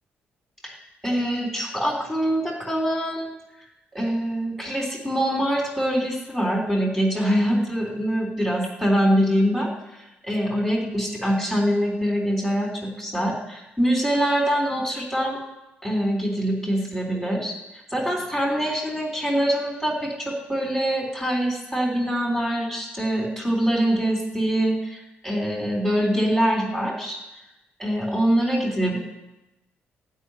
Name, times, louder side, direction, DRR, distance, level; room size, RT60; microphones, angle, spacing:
voice 1, 1.0-3.3 3.9-9.7 10.2-15.4 15.8-27.2 27.8-29.0, equal, ahead, -2 dB, 3.6 m, -24 dB
15.5 x 5.6 x 9.8 m, 0.95 s
cardioid pair, 145°, 4 cm